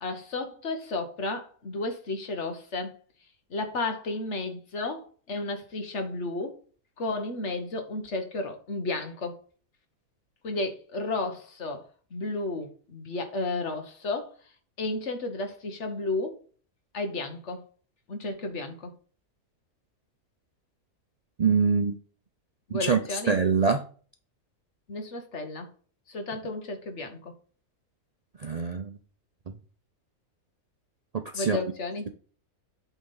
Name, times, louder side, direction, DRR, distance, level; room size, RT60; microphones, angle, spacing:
voice 1, 0.0-2.9 3.5-6.6 7.0-9.4 10.4-11.8 12.1-14.3 14.8-16.4 16.9-17.6 18.1-18.9 22.7-23.4 24.9-25.7 26.1-27.3 31.3-32.1, left 2 dB, 55° left, 1.4 m, -33 dB
voice 2, 21.4-21.9 22.7-23.0 23.3-23.8 28.4-28.9 31.1-31.6, right 5 dB, 90° right, 0.3 m, -24 dB
8.3 x 3.6 x 5.5 m
omnidirectional pair, 1.6 m